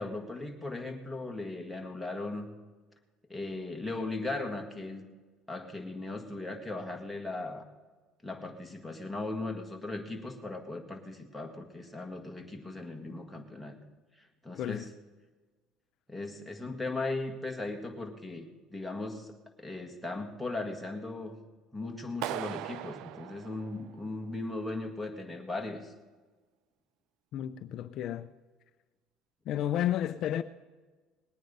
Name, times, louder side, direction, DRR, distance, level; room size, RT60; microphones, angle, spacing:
voice 1, 0.0-2.5 3.3-5.0 5.5-7.7 8.2-13.8 14.2-14.9 16.1-21.4 21.7-25.9, left 2 dB, 5° left, 1.8 m, -38 dB
voice 2, 14.5-14.9 27.3-28.3 29.5-30.4, left 11 dB, 55° left, 0.5 m, -32 dB
Clapping, 22.2-24.3, right 14 dB, 70° right, 0.4 m, -39 dB
20.0 x 9.3 x 5.4 m
cardioid pair, 135°, 0 cm